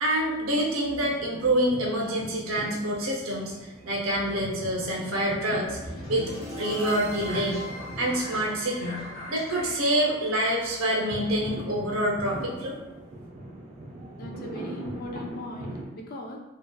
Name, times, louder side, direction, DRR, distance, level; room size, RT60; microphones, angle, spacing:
voice 1, 0.0-5.8 6.1-6.3 6.6-7.6 8.0-9.0 9.3-12.8, right 1 dB, 85° right, -2 dB, 0.6 m, -27 dB
sound 1, 1.0-15.9, right 1 dB, 35° right, 0.5 m, -41 dB
sound 2, 5.7-11.7, left 1 dB, 65° left, 0.7 m, -39 dB
voice 2, 14.2-16.4, left 2 dB, 45° left, 1 dB, 0.3 m, -38 dB
2.7 x 2.1 x 2.2 m, 1.0 s
head